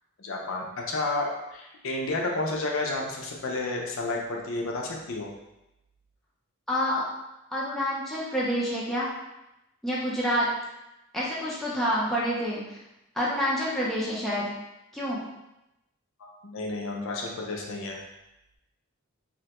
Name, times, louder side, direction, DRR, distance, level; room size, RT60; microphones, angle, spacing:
voice 1, 0.2-5.3 16.2-18.0, left 2 dB, 60° left, 0 dB, 0.5 m, -31 dB
voice 2, 6.7-7.0 7.5-9.1 9.8-10.5 11.1-12.8 13.2-14.6 14.9-15.2, equal, ahead, -7 dB, 0.4 m, -28 dB
2.8 x 2.1 x 2.9 m, 0.92 s
head